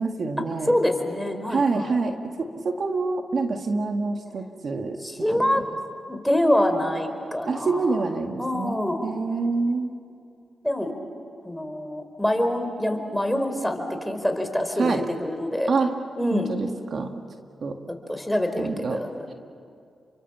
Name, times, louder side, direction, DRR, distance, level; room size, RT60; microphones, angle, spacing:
voice 1, 0.0-0.7 1.5-5.6 7.5-9.9 14.8-15.0 15.7-15.9 16.3-17.1 17.6-17.8 18.6-19.0, right 4 dB, 60° right, 4 dB, 1.9 m, -26 dB
voice 2, 0.7-2.0 5.0-5.6 6.1-8.1 8.4-9.1 10.6-10.9 11.4-15.7 16.1-16.5 17.9-19.3, left 1 dB, 5° left, 5 dB, 4.5 m, -25 dB
30.0 x 24.0 x 7.4 m, 2.4 s
cardioid pair, 50°, 0 cm